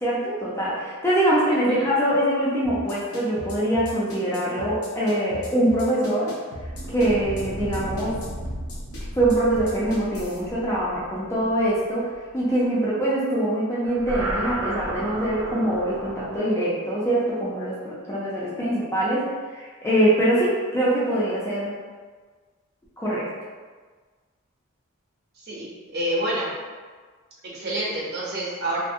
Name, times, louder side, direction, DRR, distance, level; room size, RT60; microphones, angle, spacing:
voice 1, 0.0-6.4 6.9-8.2 9.1-21.8 23.0-23.3, right 1 dB, 10° left, -8 dB, 0.4 m, -23 dB
voice 2, 1.5-1.9 25.4-25.7 25.9-26.5 27.4-28.8, right 1 dB, 50° right, -6 dB, 0.7 m, -28 dB
sound 1, 2.6-10.4, left 1 dB, 80° left, 0.6 m, -38 dB
sound 2, 6.6-12.2 13.8-16.4, right 1 dB, 90° right, 0.4 m, -34 dB
2.5 x 2.0 x 2.6 m, 1.4 s
head